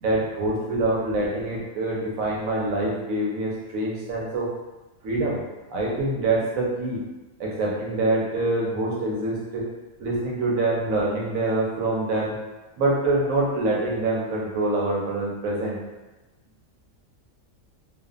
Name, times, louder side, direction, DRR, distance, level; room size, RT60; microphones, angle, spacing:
voice 1, 0.0-4.5 5.0-5.4 5.7-7.0 7.4-9.7 10.0-12.4 12.8-15.8, right 2 dB, 85° right, -3 dB, 1.1 m, -25 dB
2.5 x 2.4 x 2.4 m, 1.1 s
omnidirectional pair, 1.4 m